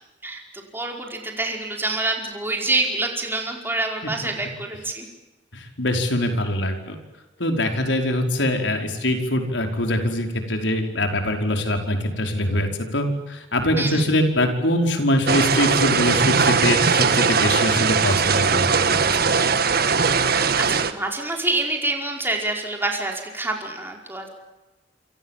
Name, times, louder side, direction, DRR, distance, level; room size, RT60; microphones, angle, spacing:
voice 1, 0.2-5.1 13.8-14.0 20.6-24.3, right 2 dB, 10° right, 1 dB, 5.0 m, -26 dB
voice 2, 5.5-7.0 7.4-18.7, left 1 dB, 80° left, 4 dB, 5.1 m, -23 dB
sound 1, 15.3-20.9, right 5 dB, 55° right, 1.7 m, -20 dB
28.0 x 26.5 x 7.5 m, 1.1 s
head